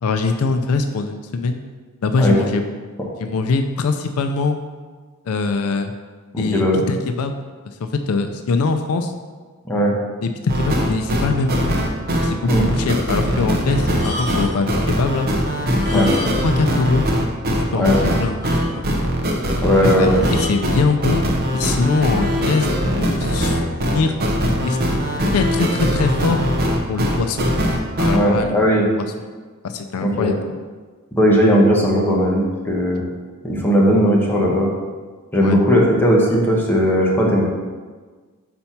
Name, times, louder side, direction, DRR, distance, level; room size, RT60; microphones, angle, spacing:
voice 1, 0.0-1.6 2.0-2.6 3.2-4.6 5.3-5.9 6.4-7.4 7.8-9.1 10.2-11.8 12.2-15.3 15.9-16.1 16.4-17.1 17.7-18.4 18.8-18.9 19.8-21.2 21.5-22.7 23.0-24.1 24.6-25.0 25.3-26.4 26.9-27.5 28.0-28.6 29.0-29.3 29.6-30.6 35.4-35.6, left 4 dB, 70° left, 7 dB, 0.4 m, -22 dB
voice 2, 6.3-6.8 9.6-9.9 12.5-12.7 15.9-16.1 17.7-18.2 19.6-20.2 28.1-28.9 30.0-30.3 31.2-33.0 33.4-34.7 35.3-37.4, equal, 10° left, -3 dB, 1.0 m, -17 dB
sound 1, 10.5-28.2, equal, 45° right, 0.7 m, -21 dB
sound 2, 13.9-14.7 15.7-16.7 16.9-17.1 17.6-17.7 17.9-18.0 18.4-19.1 20.2-20.7 21.5-21.8, equal, 35° left, 1.5 m, -32 dB
4.3 x 4.2 x 5.7 m, 1.4 s
head